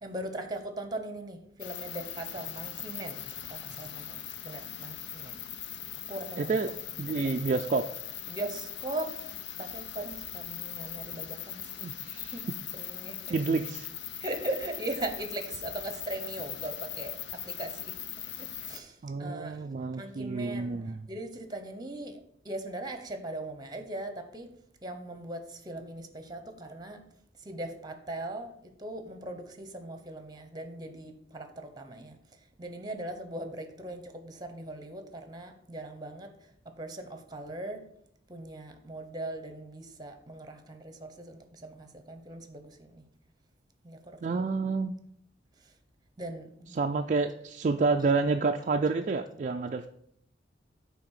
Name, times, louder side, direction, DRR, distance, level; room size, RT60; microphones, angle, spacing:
voice 1, 0.0-3.2 3.5-5.4 6.1-6.6 7.1-7.3 8.3-9.1 9.6-13.3 14.2-17.9 18.4-19.7 19.9-24.5 24.8-27.0 27.4-37.8 38.3-43.0 43.8-44.2 45.6-45.7 46.2-46.8, right 1 dB, 20° right, 7 dB, 1.0 m, -40 dB
sound 1, 1.6-18.8, left 10 dB, 65° left, 0.6 m, -40 dB
voice 2, 6.4-6.7 7.0-7.9 11.8-12.3 13.3-13.9 19.0-21.0 44.2-45.0 46.7-49.9, right 4 dB, 40° right, 5 dB, 0.4 m, -29 dB
8.6 x 3.5 x 6.5 m, 0.70 s
head